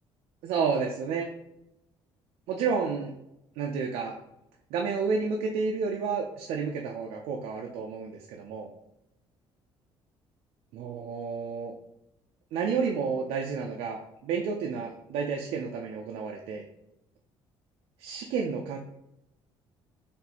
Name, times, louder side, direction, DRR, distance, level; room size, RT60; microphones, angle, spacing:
voice 1, 0.4-1.3 2.5-3.1 3.6-4.2 4.7-8.7 10.7-11.7 12.5-16.6 18.0-18.8, right 5 dB, 85° right, 1 dB, 0.5 m, -30 dB
4.3 x 3.2 x 2.9 m, 0.84 s
cardioid pair, 160°, 10 cm